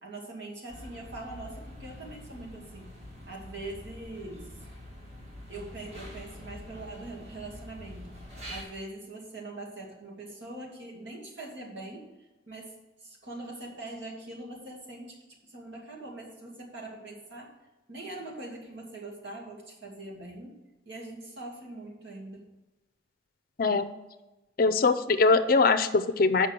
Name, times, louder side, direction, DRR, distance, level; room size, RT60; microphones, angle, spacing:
voice 1, 0.0-2.9 3.3-4.5 5.5-8.1 8.5-12.1 12.5-12.7 13.0-15.2 15.4-17.5 17.9-20.5 20.9-22.4, right 2 dB, 70° right, -2 dB, 2.3 m, -42 dB
sound 1, 0.7-8.6, left 1 dB, 35° right, 2.0 m, -45 dB
voice 2, 24.6-26.5, left 4 dB, 50° left, 11 dB, 0.5 m, -22 dB
6.8 x 5.4 x 6.6 m, 1.1 s
head